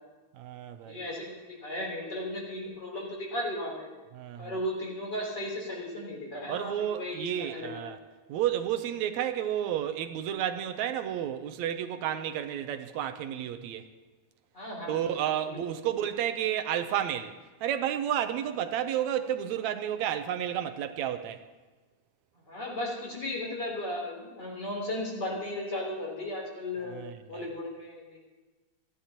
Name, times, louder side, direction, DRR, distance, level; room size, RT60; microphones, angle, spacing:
voice 1, 0.3-1.0 4.1-4.5 6.5-8.0 8.3-13.9 14.9-21.4 26.8-27.5, right 10 dB, 80° right, 8 dB, 2.0 m, -31 dB
voice 2, 0.9-3.9 4.4-8.0 14.5-15.6 22.5-27.0 27.3-28.2, left 1 dB, 35° left, -2 dB, 4.0 m, -36 dB
29.0 x 11.5 x 2.9 m, 1.3 s
omnidirectional pair, 3.3 m